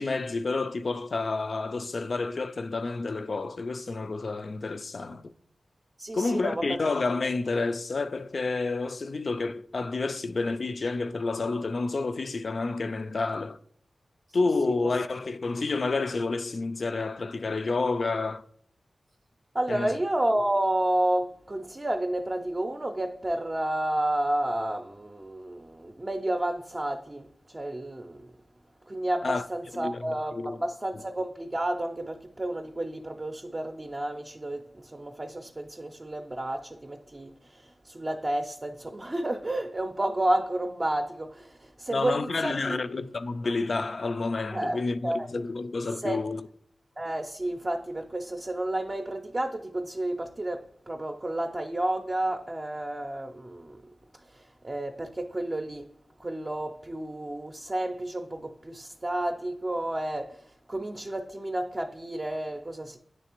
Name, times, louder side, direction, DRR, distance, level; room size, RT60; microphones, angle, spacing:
voice 1, 0.0-5.3 6.1-13.6 14.3-18.4 19.7-19.9 29.2-29.5 29.7-30.0 30.3-30.6 41.9-46.5, left 3 dB, 60° left, 0.3 m, -29 dB
voice 2, 6.0-6.9 14.7-15.0 19.5-28.3 28.9-42.8 44.5-45.3 46.0-46.3 47.0-53.8 54.3-55.9 56.2-63.0, right 1 dB, 30° right, 0.5 m, -31 dB
9.7 x 3.3 x 2.9 m
wide cardioid pair, 65°, 0 cm